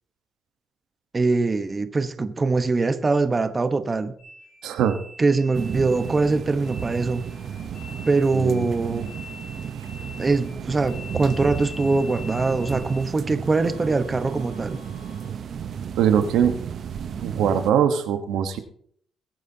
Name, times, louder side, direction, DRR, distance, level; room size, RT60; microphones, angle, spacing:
voice 1, 1.1-4.1 5.2-7.2 8.1-9.1 10.2-14.8, right 3 dB, 30° right, 9 dB, 1.0 m, -22 dB
sound 1, 4.2-13.1 13.4-15.3, left 3 dB, 70° left, 4.7 m, -45 dB
voice 2, 4.6-5.0 8.3-9.1 16.0-16.5 17.2-18.6, right 8 dB, 85° right, 8 dB, 1.1 m, -22 dB
sound 2, 5.5-17.7, right 8 dB, 60° right, 0.8 m, -34 dB
22.5 x 9.1 x 2.8 m, 0.64 s
cardioid pair, 90°, 0 cm